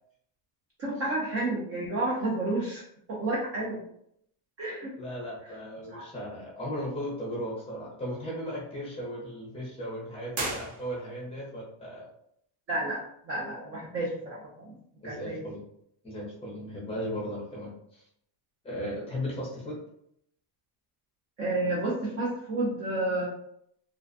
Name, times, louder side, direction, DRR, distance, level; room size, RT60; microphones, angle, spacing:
voice 1, 0.8-2.8 3.1-3.8 4.6-4.9 5.9-6.1 12.7-14.8 15.0-15.4 21.4-23.3, right 2 dB, 35° right, -5 dB, 0.4 m, -31 dB
voice 2, 5.0-12.1 15.0-15.6 16.0-18.0 18.6-19.8, equal, 15° left, -5 dB, 0.6 m, -36 dB
sound 1, 10.3-11.4, right 2 dB, 70° right, 0.9 m, -35 dB
2.4 x 2.1 x 2.4 m, 0.71 s
cardioid pair, 170°, 44 cm